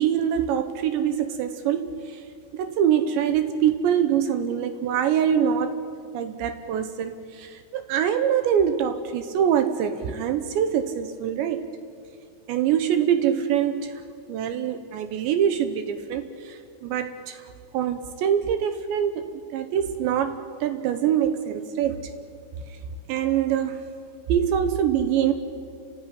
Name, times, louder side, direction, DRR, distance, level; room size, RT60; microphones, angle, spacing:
voice 1, 0.0-2.2 2.5-5.7 6.1-11.7 12.5-14.0 14.3-17.5 17.7-22.0 23.1-23.9 24.3-25.3, right 9 dB, 75° right, 9 dB, 2.9 m, -24 dB
29.5 x 15.0 x 10.0 m, 2.3 s
omnidirectional pair, 5.9 m